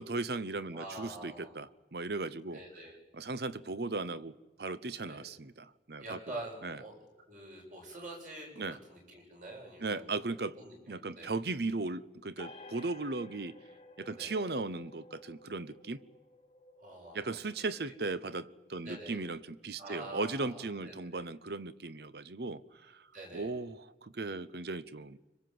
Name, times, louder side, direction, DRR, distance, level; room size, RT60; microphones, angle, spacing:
voice 1, 0.0-2.6 3.1-6.2 6.6-6.8 8.6-8.8 9.8-10.6 10.9-13.6 14.0-16.0 17.1-23.0 23.3-25.2, right 3 dB, 60° right, 0.8 m, -37 dB
voice 2, 0.7-1.5 2.5-3.0 5.0-5.2 6.0-7.0 7.3-10.3 10.5-11.3 14.2-14.3 16.8-17.4 18.8-19.2 19.8-21.2 23.1-23.5, right 2 dB, 45° right, 7.3 m, -46 dB
sound 1, 12.4-19.6, left 2 dB, 30° left, 1.3 m, -55 dB
25.5 x 23.5 x 7.8 m
head